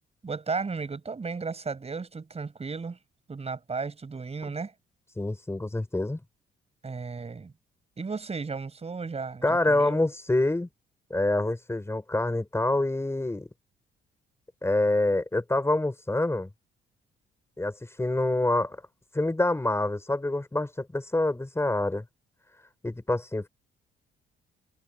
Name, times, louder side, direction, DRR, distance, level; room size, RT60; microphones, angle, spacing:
voice 1, 0.2-3.0 3.3-4.7 6.8-7.5 8.0-10.0, right 4 dB, 30° right, 7.8 m, -34 dB
voice 2, 5.2-6.2 9.4-10.7 11.1-13.5 14.6-16.5 17.6-18.8 19.1-22.0 22.8-23.5, left 2 dB, 15° left, 5.0 m, -26 dB
cardioid pair, 90°, 20 cm